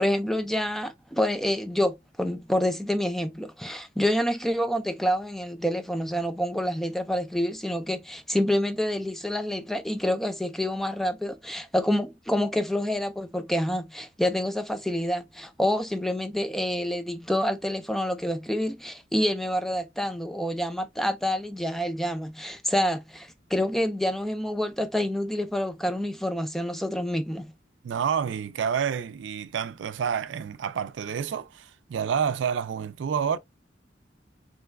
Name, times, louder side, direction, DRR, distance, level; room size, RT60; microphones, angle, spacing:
voice 1, 0.0-27.5, left 1 dB, ahead, 0.3 m, -27 dB
voice 2, 27.8-33.4, right 7 dB, 80° right, 0.3 m, -29 dB
3.0 x 2.2 x 3.3 m
head